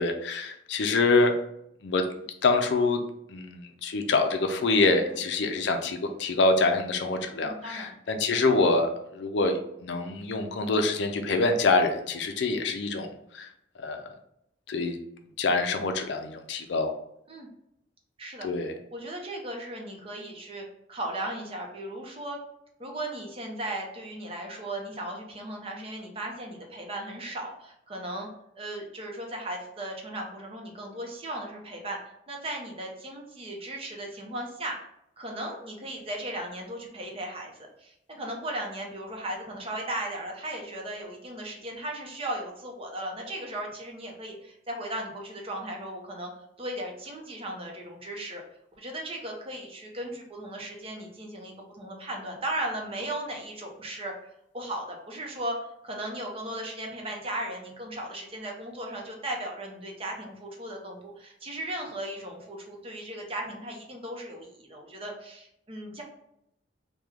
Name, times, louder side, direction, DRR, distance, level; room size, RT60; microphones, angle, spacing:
voice 1, 0.0-1.3 1.8-2.1 2.4-3.0 3.3-13.5 13.8-14.1 14.7-15.0 15.4-16.9 18.4-18.7, left 3 dB, 70° left, 6 dB, 0.4 m, -25 dB
voice 2, 7.4-8.0 17.3-17.5 18.2-18.5 18.9-22.4 22.8-28.3 28.5-32.0 32.3-34.8 35.2-37.5 37.8-46.3 46.6-48.4 48.7-54.1 54.5-55.6 55.8-66.0, right 1 dB, 30° right, 0 dB, 0.7 m, -36 dB
3.1 x 2.2 x 3.4 m, 0.77 s
head